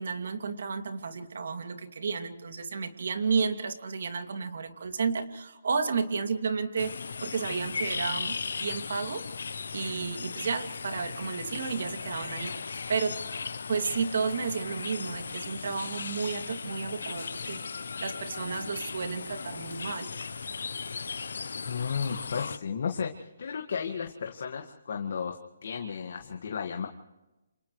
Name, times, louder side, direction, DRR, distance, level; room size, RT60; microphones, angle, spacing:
voice 1, 0.0-9.3 9.7-12.6 12.9-13.2 13.7-17.6 18.0-20.1, right 5 dB, 65° right, 6 dB, 2.5 m, -32 dB
sound 1, 6.8-22.6, left 5 dB, 75° left, 0.8 m, -37 dB
voice 2, 21.7-26.9, left 6 dB, 55° left, 3 dB, 1.9 m, -34 dB
28.0 x 28.0 x 3.3 m, 1.0 s
hypercardioid pair, 165°, 0 cm